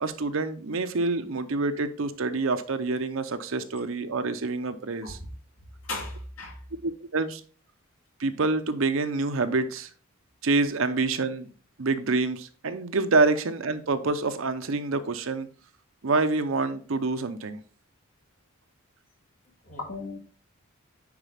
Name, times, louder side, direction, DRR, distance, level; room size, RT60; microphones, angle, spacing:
voice 1, 0.0-5.2 6.8-7.4 8.2-9.9 10.4-11.5 11.8-15.5 16.0-17.6, right 3 dB, 65° right, 9 dB, 0.7 m, -27 dB
voice 2, 5.9-6.5 19.7-20.2, left 2 dB, 70° left, 0 dB, 2.4 m, -35 dB
9.6 x 4.1 x 3.5 m, 0.40 s
head